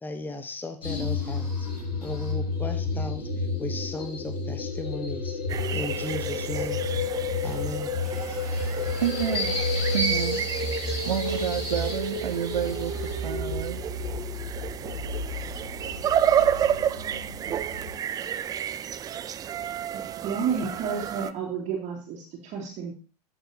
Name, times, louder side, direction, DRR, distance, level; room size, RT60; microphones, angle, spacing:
voice 1, 0.0-1.7 2.0-5.4 5.7-6.8 7.4-7.9, left 2 dB, 10° left, 7 dB, 1.1 m, -36 dB
sound 1, 0.8-18.0, left 3 dB, 80° left, 4.4 m, -30 dB
sound 2, 5.5-21.3, right 9 dB, 20° right, 0.4 m, -31 dB
voice 2, 9.0-9.6 9.9-10.5 11.0-13.8, right 9 dB, 75° right, 5 dB, 1.0 m, -29 dB
voice 3, 19.9-22.9, right 6 dB, 35° right, -1 dB, 2.6 m, -31 dB
13.0 x 7.0 x 2.8 m, 0.36 s
hypercardioid pair, 100°, 20 cm